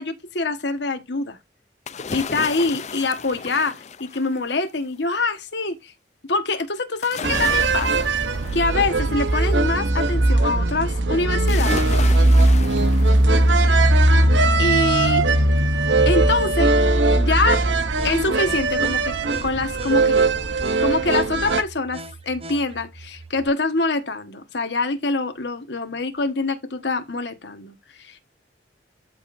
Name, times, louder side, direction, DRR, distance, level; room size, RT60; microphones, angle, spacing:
voice 1, 0.0-1.4 2.1-3.7 4.0-5.9 6.3-8.1 8.5-11.9 14.6-15.2 16.0-16.7 17.2-17.6 18.0-19.1 19.4-20.2 20.8-28.2, left 3 dB, 70° left, 1.5 m, -25 dB
sound 1, 1.9-4.7 7.0-9.6 11.5-13.8 14.2-14.3, left 5 dB, 40° left, 0.5 m, -34 dB
sound 2, 7.2-21.6, right 2 dB, 80° right, 0.9 m, -19 dB
sound 3, 8.1-23.5, right 3 dB, 30° right, 0.7 m, -41 dB
13.5 x 5.5 x 2.6 m
head